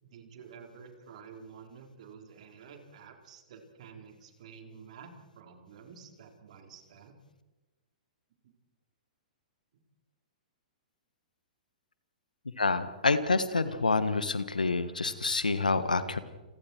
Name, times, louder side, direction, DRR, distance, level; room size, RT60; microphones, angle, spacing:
voice 1, 0.0-7.2 8.4-8.5, right 6 dB, 55° right, 4 dB, 4.2 m, -50 dB
voice 2, 12.6-16.2, left 3 dB, 85° left, 13 dB, 1.6 m, -27 dB
29.5 x 22.5 x 4.7 m, 1.1 s
figure-of-eight pair, 110°, 4 cm